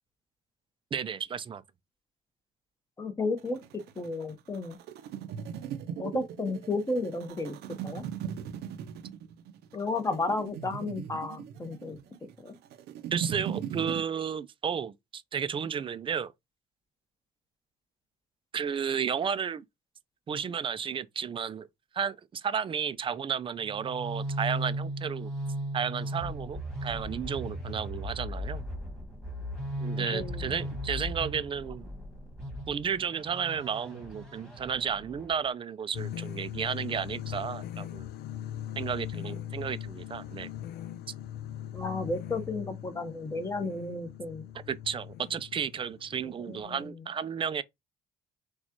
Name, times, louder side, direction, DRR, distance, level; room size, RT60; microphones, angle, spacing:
voice 1, 0.9-1.6 13.1-16.3 18.5-19.6 20.3-21.7 21.9-25.3 25.7-28.6 29.8-31.9 32.7-38.1 38.8-40.5 44.7-47.6, right 7 dB, 30° right, 0.4 m, -33 dB
voice 2, 3.0-3.6 4.0-4.8 6.0-7.6 7.8-8.0 9.7-12.0 12.4-12.6 29.9-30.7 41.7-44.5 46.2-47.0, left 2 dB, 20° left, 1.0 m, -33 dB
sound 1, 3.4-14.0, right 8 dB, 75° right, 0.6 m, -39 dB
sound 2, 23.6-35.5, equal, 5° left, 1.7 m, -37 dB
sound 3, 35.9-46.9, left 11 dB, 70° left, 0.4 m, -40 dB
6.3 x 2.4 x 2.9 m
cardioid pair, 110°, 17 cm